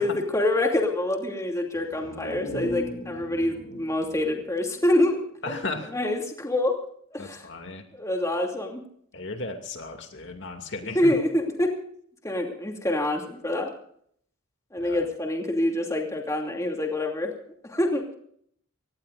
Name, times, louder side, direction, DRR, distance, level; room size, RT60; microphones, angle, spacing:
voice 1, 0.0-5.2 5.9-6.8 7.1-7.5 7.9-8.8 10.9-11.7 12.2-13.7 14.7-17.3 17.6-18.1, left 1 dB, 15° left, 1 dB, 2.8 m, -26 dB
sound 1, 1.7-5.5 5.8-5.9, equal, 80° left, 6.3 m, -39 dB
voice 2, 5.4-5.9 7.2-7.8 9.1-11.1 14.8-15.1, left 2 dB, 60° left, 4 dB, 2.6 m, -35 dB
25.0 x 19.0 x 2.6 m, 0.65 s
head